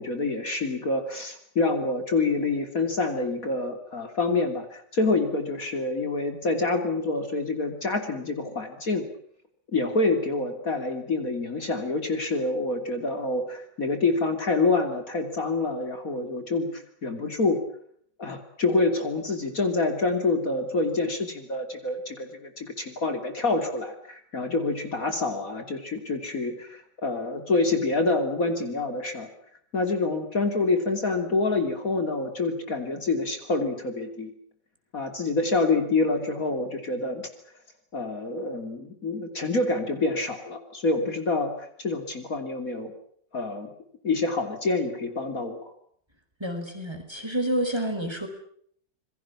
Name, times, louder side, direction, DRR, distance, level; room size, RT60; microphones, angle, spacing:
voice 1, 0.0-9.1 9.7-17.6 18.2-29.3 29.7-34.3 34.9-37.3 37.9-42.9 43.3-43.7 44.0-45.7, left 3 dB, 50° left, 6 dB, 3.4 m, -27 dB
voice 2, 46.4-48.3, right 1 dB, 15° right, 6 dB, 4.8 m, -29 dB
27.5 x 21.5 x 7.2 m, 0.64 s
omnidirectional pair, 1.9 m